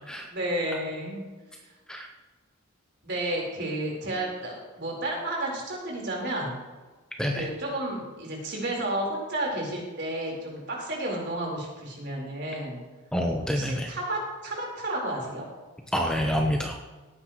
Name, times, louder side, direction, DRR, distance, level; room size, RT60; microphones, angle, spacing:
voice 1, 0.3-1.2 3.0-6.6 7.4-12.8 13.5-15.4, right 1 dB, 50° right, -2 dB, 4.3 m, -31 dB
voice 2, 13.1-13.9 15.9-16.8, equal, 5° left, 1 dB, 0.8 m, -27 dB
18.0 x 9.8 x 3.1 m, 1.3 s
head